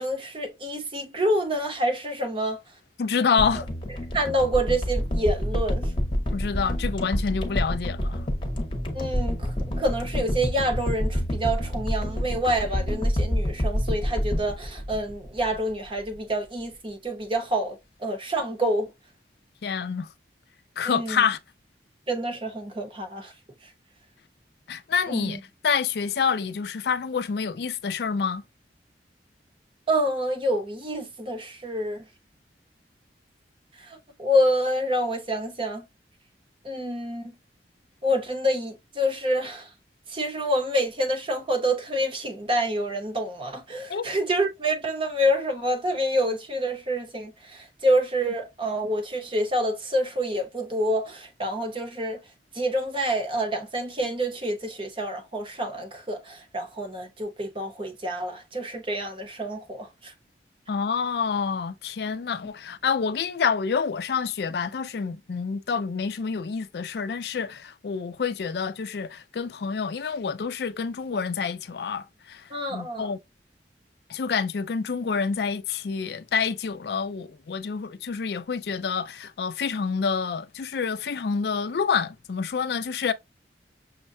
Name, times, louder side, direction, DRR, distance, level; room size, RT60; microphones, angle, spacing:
voice 1, 0.0-2.6 4.1-5.9 8.9-18.9 20.8-21.2 22.1-23.3 25.1-25.4 29.9-32.1 33.8-35.9 36.6-37.3 38.0-39.7 40.1-52.2 52.5-60.1 72.5-73.1, equal, 30° right, 0.8 m, -27 dB
voice 2, 3.0-3.7 6.3-8.2 19.6-20.1 20.8-21.4 24.7-28.4 43.9-44.1 60.7-73.2 74.1-83.1, left 6 dB, 60° left, 0.4 m, -27 dB
sound 1, 3.4-15.7 16.0-16.1, equal, 30° left, 0.9 m, -28 dB
6.3 x 2.2 x 2.6 m
head